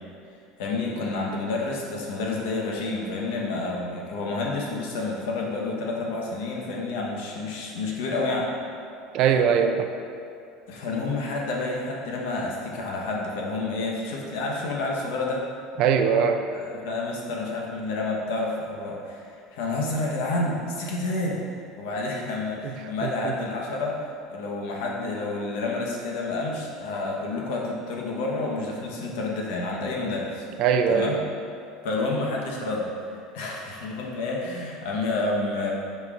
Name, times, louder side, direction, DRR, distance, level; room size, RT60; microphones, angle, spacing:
voice 1, 0.6-8.5 10.7-15.4 16.5-21.4 21.8-30.5 30.9-31.2 31.8-35.7, left 2 dB, 75° left, -2 dB, 1.0 m, -29 dB
voice 2, 9.1-9.9 15.8-16.5 22.6-22.7 23.0-23.3 30.6-31.1, right 7 dB, 45° right, 6 dB, 0.3 m, -21 dB
8.5 x 4.5 x 2.5 m, 2.5 s
cardioid pair, 170°, 0 cm